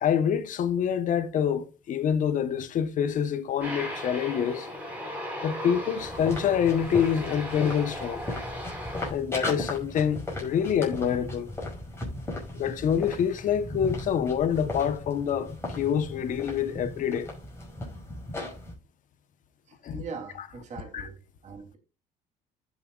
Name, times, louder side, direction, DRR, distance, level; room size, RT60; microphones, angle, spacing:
voice 1, 0.0-4.7 5.4-8.2 9.1-11.5 12.1-12.2 12.5-17.3 19.8-20.0 20.9-21.1, left 8 dB, 60° left, 1.0 m, -26 dB
Aircraft, 3.6-9.1, equal, 10° right, 4.8 m, -37 dB
sound 1, 6.0-18.7, left 1 dB, 15° left, 5.6 m, -37 dB
voice 2, 19.7-21.8, right 5 dB, 50° right, 3.2 m, -42 dB
15.0 x 6.4 x 2.4 m
supercardioid pair, 85°, 15 cm